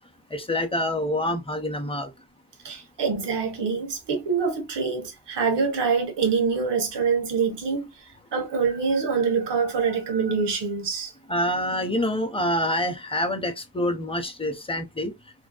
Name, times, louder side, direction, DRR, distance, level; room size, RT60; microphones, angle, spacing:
voice 1, 0.3-2.1 11.3-15.1, left 1 dB, 15° left, 0.6 m, -26 dB
voice 2, 2.6-7.9 8.3-11.1, right 5 dB, 85° right, 0.9 m, -25 dB
2.7 x 2.0 x 2.3 m
cardioid pair, 60°, 41 cm